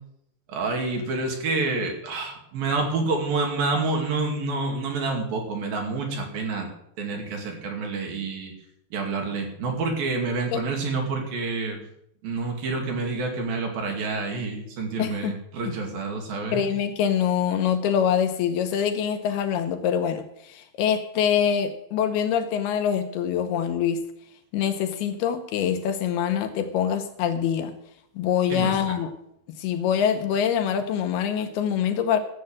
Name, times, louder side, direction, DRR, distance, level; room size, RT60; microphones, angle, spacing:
voice 1, 0.5-6.7 7.0-8.5 8.9-11.8 12.2-16.6 28.5-28.8, right 3 dB, 60° right, 2 dB, 4.0 m, -28 dB
voice 2, 15.0-15.4 16.5-24.0 24.5-27.8 28.2-29.1 29.6-32.2, left 8 dB, 80° left, 8 dB, 2.6 m, -24 dB
14.0 x 7.7 x 7.6 m, 0.77 s
omnidirectional pair, 4.9 m